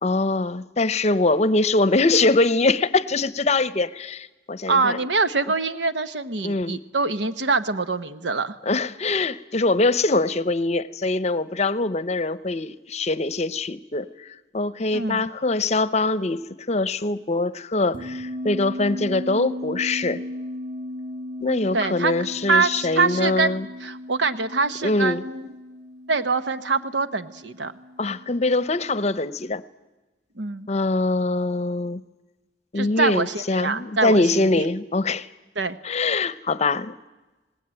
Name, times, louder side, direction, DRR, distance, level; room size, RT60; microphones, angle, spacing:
voice 1, 0.0-5.0 6.4-6.8 8.7-20.2 21.4-23.7 24.8-25.2 28.0-29.6 30.7-32.0 32.7-35.3 35.8-36.9, left 2 dB, 40° left, 16 dB, 0.7 m, -23 dB
voice 2, 4.7-8.5 14.9-15.2 21.7-22.1 22.5-25.5 26.1-27.7 30.4-30.7 32.8-34.6 35.6-35.8, right 4 dB, 85° right, 11 dB, 1.1 m, -24 dB
sound 1, 17.9-29.3, left 1 dB, 45° right, 7.3 m, -36 dB
27.0 x 19.0 x 9.0 m, 1.1 s
head